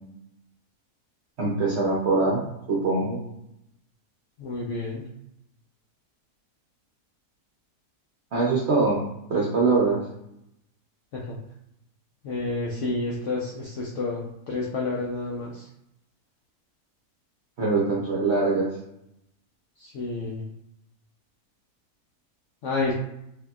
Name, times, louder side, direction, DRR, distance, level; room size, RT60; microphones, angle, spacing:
voice 1, 1.4-3.2 8.3-9.0 9.3-10.1 17.6-18.7, right 3 dB, 55° right, -5 dB, 0.8 m, -23 dB
voice 2, 4.4-5.1 11.1-11.4 12.2-15.7 19.8-20.5 22.6-22.9, left 3 dB, 65° left, -4 dB, 0.8 m, -30 dB
3.8 x 2.8 x 2.2 m, 0.79 s
omnidirectional pair, 1.6 m